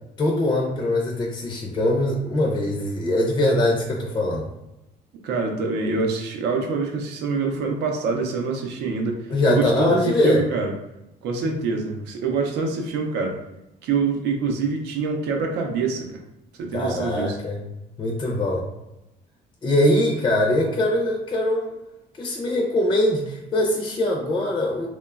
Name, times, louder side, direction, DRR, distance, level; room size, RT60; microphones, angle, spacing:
voice 1, 0.2-4.5 9.3-10.5 16.7-17.6 18.0-18.7 19.6-21.8 22.2-24.9, left 1 dB, 30° left, -1 dB, 0.4 m, -22 dB
voice 2, 5.1-10.7 11.2-13.4 13.8-16.2 16.6-17.4, right 4 dB, 85° right, 2 dB, 0.5 m, -25 dB
2.9 x 2.1 x 2.3 m, 0.91 s
cardioid pair, 110°, 17 cm